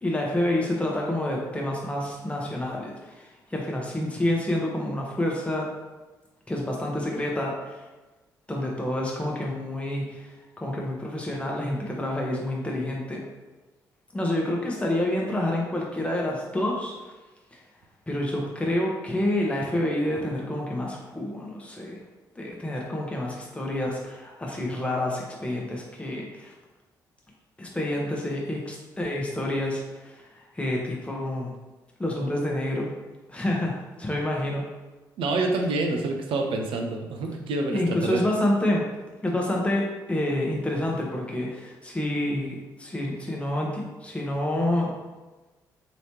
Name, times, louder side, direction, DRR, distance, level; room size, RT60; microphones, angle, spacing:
voice 1, 0.0-5.7 6.5-7.8 8.5-13.2 14.1-16.9 17.5-17.6 18.1-22.0 22.4-26.5 27.6-31.5 32.0-32.9 33.3-34.7 37.7-38.9 39.2-44.9, left 1 dB, 10° left, -2 dB, 1.0 m, -28 dB
voice 2, 35.2-38.2, right 2 dB, 60° right, 3 dB, 0.5 m, -27 dB
3.1 x 2.9 x 3.0 m, 1.1 s
hypercardioid pair, 40°, 10 cm